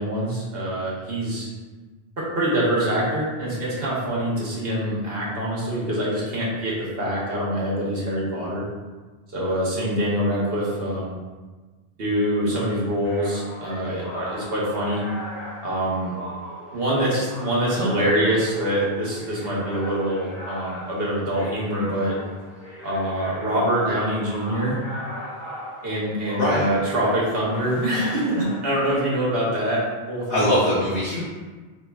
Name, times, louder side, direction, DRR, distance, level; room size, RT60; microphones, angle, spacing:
voice 1, 0.0-1.5 2.2-8.6 9.3-11.2 12.0-15.0 15.6-16.1 16.7-22.1 22.8-24.8 25.8-30.5, right 1 dB, 65° right, -5 dB, 1.3 m, -25 dB
sound 1, 13.0-29.0, equal, 40° left, 1.5 m, -39 dB
voice 2, 26.3-26.7 30.3-31.2, equal, 65° left, -8 dB, 1.0 m, -21 dB
5.0 x 3.1 x 2.3 m, 1.3 s
omnidirectional pair, 1.1 m